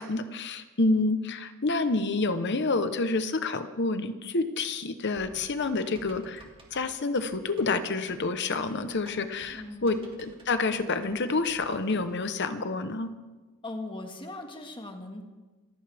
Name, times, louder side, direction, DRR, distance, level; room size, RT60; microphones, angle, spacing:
voice 1, 0.0-6.5 6.7-13.1, left 3 dB, 55° left, 10 dB, 1.0 m, -28 dB
Typing, 5.1-12.2, right 2 dB, 25° right, 2.4 m, -54 dB
voice 2, 9.5-10.0 13.6-15.2, left 2 dB, 25° left, 4 dB, 1.8 m, -39 dB
27.0 x 14.5 x 3.5 m, 1.2 s
head